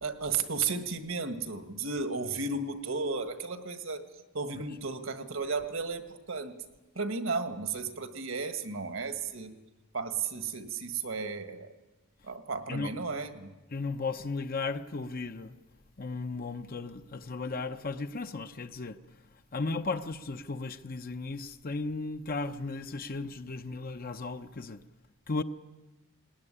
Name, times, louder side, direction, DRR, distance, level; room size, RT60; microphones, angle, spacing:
voice 1, 0.0-4.1 4.3-6.5 7.0-9.5 9.9-11.7 12.2-13.5, right 4 dB, 70° right, 1.8 m, -34 dB
voice 2, 13.7-15.6 16.0-19.0 19.5-24.8 25.3-25.4, left 3 dB, 45° left, 0.7 m, -35 dB
19.5 x 19.0 x 10.0 m
head